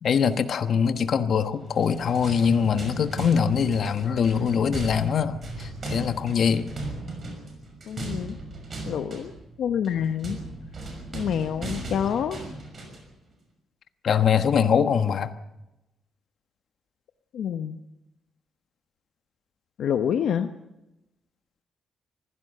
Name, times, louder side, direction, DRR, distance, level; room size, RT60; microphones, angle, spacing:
voice 1, 0.0-6.7 14.0-15.3, left 7 dB, 50° left, 9 dB, 1.3 m, -23 dB
sound 1, 1.7-13.1, right 2 dB, 35° right, 6.0 m, -37 dB
voice 2, 7.9-8.4 8.8-9.3 9.6-10.4 11.1-12.4 17.3-17.8 19.8-20.5, left 8 dB, 70° left, 8 dB, 0.9 m, -27 dB
25.0 x 16.0 x 6.7 m, 0.93 s
cardioid pair, 150°, 0 cm